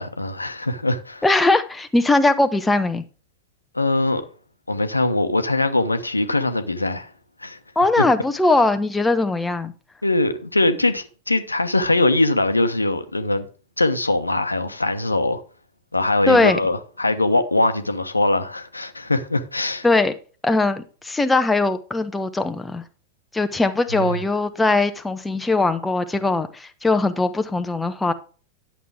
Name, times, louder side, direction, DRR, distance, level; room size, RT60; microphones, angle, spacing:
voice 1, 0.0-1.2 3.7-4.2 4.7-7.1 7.4-7.6 8.0-8.1 10.0-13.5 13.8-15.4 15.9-19.8 23.9-24.2, left 2 dB, 80° left, 1.0 m, -22 dB
voice 2, 1.2-3.0 7.8-9.7 16.3-16.6 19.8-20.1 20.4-22.8 23.3-28.1, left 2 dB, 10° left, 0.9 m, -20 dB
11.0 x 7.4 x 3.5 m
figure-of-eight pair, 90°, 0 cm